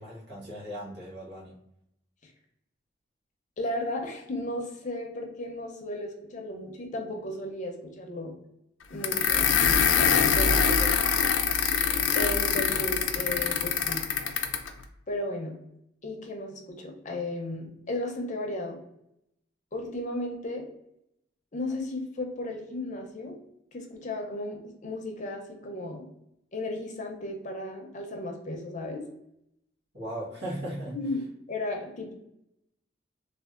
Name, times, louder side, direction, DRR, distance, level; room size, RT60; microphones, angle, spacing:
voice 1, 0.0-1.5 10.4-10.9 29.9-31.0, equal, 65° right, -5 dB, 1.3 m, -37 dB
voice 2, 3.6-8.3 8.9-9.5 10.1-10.6 12.1-14.0 15.1-15.5 16.0-18.8 19.7-20.6 21.5-23.4 23.7-26.0 26.5-29.0 30.9-31.2 31.5-32.1, left 1 dB, 40° left, 2 dB, 0.6 m, -34 dB
sound 1, 9.0-14.7, left 7 dB, 90° left, 0.4 m, -24 dB
3.4 x 2.4 x 2.4 m, 0.80 s
head